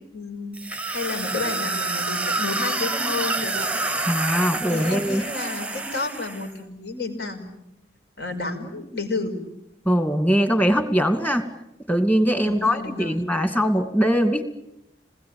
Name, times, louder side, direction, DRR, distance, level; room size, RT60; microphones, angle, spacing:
voice 1, 0.1-3.8 4.7-7.5 8.2-9.3 12.4-13.2, left 3 dB, 70° left, 4 dB, 5.6 m, -31 dB
sound 1, 0.5-6.5, right 2 dB, 5° right, 0.9 m, -28 dB
voice 2, 4.1-5.2 9.9-11.5 11.9-14.4, equal, 10° left, 8 dB, 2.3 m, -21 dB
27.5 x 20.5 x 8.9 m, 0.83 s
head